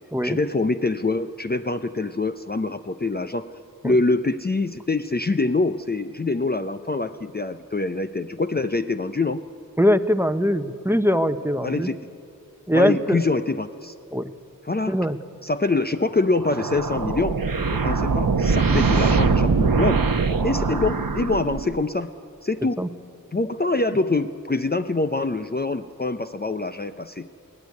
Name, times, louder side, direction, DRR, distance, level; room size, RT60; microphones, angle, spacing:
voice 1, 0.2-3.5 3.8-9.4 11.6-12.0 12.7-13.9 14.6-15.0 15.4-17.4 17.7-20.0 20.4-22.1 22.4-22.8 23.3-27.3, left 3 dB, 30° left, 9 dB, 0.6 m, -25 dB
voice 2, 9.8-11.9 12.7-13.2 14.1-14.3 14.9-15.2 18.7-18.8 22.8-22.9, equal, 5° right, 10 dB, 0.9 m, -21 dB
sound 1, 16.4-21.8, right 4 dB, 80° right, 1.1 m, -22 dB
22.5 x 17.0 x 9.5 m, 2.6 s
wide cardioid pair, 45°, 34 cm